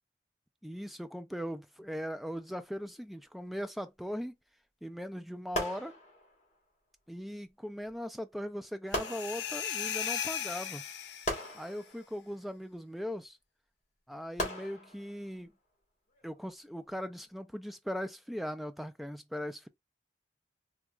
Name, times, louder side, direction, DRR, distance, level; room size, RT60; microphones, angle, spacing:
voice 1, 0.6-4.3 4.8-5.9 7.1-10.8 11.5-13.4 14.1-15.5 16.2-19.7, equal, ahead, 0.3 m, -39 dB
sound 1, 5.5-6.6 7.9-8.0 8.9-9.9 11.3-12.6 14.4-15.4 16.1-16.4, equal, 40° left, 1.3 m, -38 dB
sound 2, 8.9-11.6, left 8 dB, 75° left, 0.5 m, -37 dB
3.5 x 2.3 x 2.9 m
head